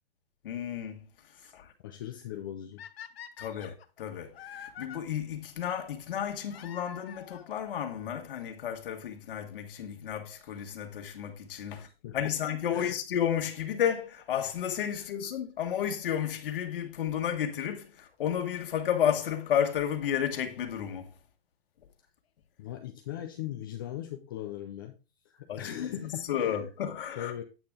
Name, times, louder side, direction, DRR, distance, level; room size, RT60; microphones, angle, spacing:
voice 1, 0.4-1.1 1.4-1.7 3.4-11.9 12.1-21.1 25.5-27.3, left 9 dB, 60° left, 1.8 m, -32 dB
voice 2, 1.8-2.8 11.7-12.4 12.7-13.0 14.9-15.1 22.6-25.0 25.3-26.5 27.1-27.4, left 11 dB, 25° left, 0.4 m, -40 dB
sound 1, 2.8-5.0 6.5-7.5 8.5-8.6 9.3-9.4 9.5-9.6 11.5-11.8 14.6-14.7 15.7-15.8 17.3-17.4 17.7-17.8 18.0-18.1 18.3-18.4 18.5-18.6 18.8-18.9 19.1-19.2, left 9 dB, 85° left, 1.0 m, -46 dB
8.8 x 6.0 x 3.6 m
hypercardioid pair, 170°, 30 cm